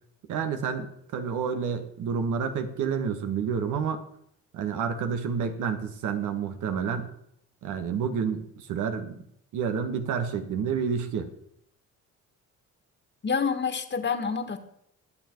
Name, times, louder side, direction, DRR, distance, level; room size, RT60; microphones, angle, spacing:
voice 1, 0.3-4.0 4.5-7.1 7.6-9.2 9.5-11.3, right 6 dB, 80° right, 7 dB, 1.8 m, -29 dB
voice 2, 13.2-14.6, left 6 dB, 35° left, 8 dB, 1.8 m, -27 dB
21.0 x 7.4 x 4.7 m, 0.73 s
cardioid pair, 90°, 30 cm